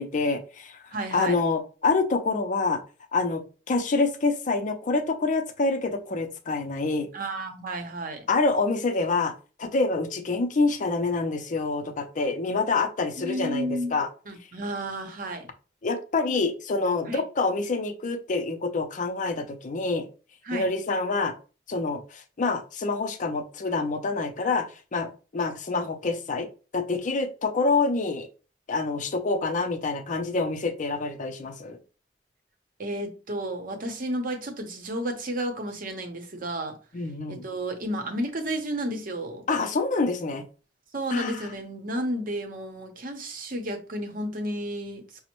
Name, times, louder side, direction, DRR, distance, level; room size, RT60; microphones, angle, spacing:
voice 1, 0.0-0.8 1.1-2.8 3.1-7.1 8.3-9.3 9.6-14.1 15.8-20.1 20.5-21.3 21.7-24.7 24.9-26.5 26.7-28.3 28.7-31.8 36.9-37.4 39.5-40.4 41.1-41.4, left 3 dB, 45° left, 0.5 m, -26 dB
voice 2, 0.9-1.4 7.1-8.2 13.2-14.0 14.3-15.5 17.1-17.2 20.4-20.7 32.8-36.8 37.3-39.5 40.9-45.2, right 1 dB, 50° right, 0.7 m, -32 dB
5.1 x 2.0 x 2.9 m
head